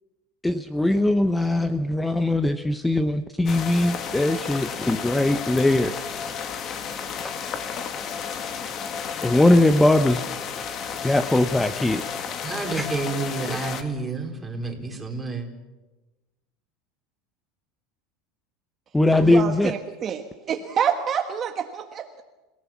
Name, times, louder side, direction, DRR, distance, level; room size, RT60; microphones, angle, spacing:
voice 1, 0.4-5.9 9.2-10.3 11.0-12.2 12.7-12.9 18.9-19.7, left 1 dB, 5° left, 11 dB, 0.8 m, -20 dB
sound 1, 3.5-13.8, left 7 dB, 40° left, 2.3 m, -32 dB
voice 2, 12.4-15.4, right 3 dB, 10° right, 2 dB, 4.2 m, -30 dB
voice 3, 19.2-22.2, right 8 dB, 30° right, 5 dB, 1.5 m, -27 dB
28.5 x 18.0 x 7.3 m, 1.1 s
supercardioid pair, 135°, 0 cm